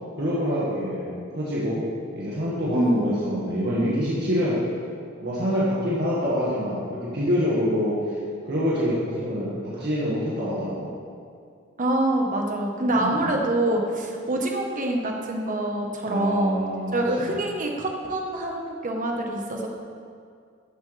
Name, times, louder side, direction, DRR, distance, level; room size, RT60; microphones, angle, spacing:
voice 1, 0.2-1.9 2.1-4.6 5.2-8.2 8.4-11.0 13.0-13.4 16.0-17.4, equal, 55° right, -8 dB, 1.9 m, -26 dB
voice 2, 2.7-3.2 11.8-16.6 16.9-19.7, right 1 dB, 40° right, 1 dB, 1.3 m, -25 dB
13.5 x 8.1 x 3.4 m, 2.3 s
head